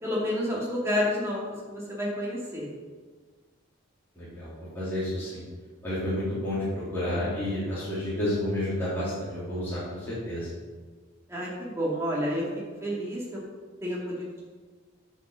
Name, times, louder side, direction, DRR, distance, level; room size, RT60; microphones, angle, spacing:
voice 1, 0.0-2.7 11.3-12.5 12.8-13.4 13.8-14.4, left 1 dB, 15° right, -6 dB, 2.3 m, -30 dB
voice 2, 4.1-5.4 5.8-10.5, left 1 dB, 10° left, -12 dB, 3.0 m, -30 dB
9.2 x 5.5 x 6.3 m, 1.5 s
head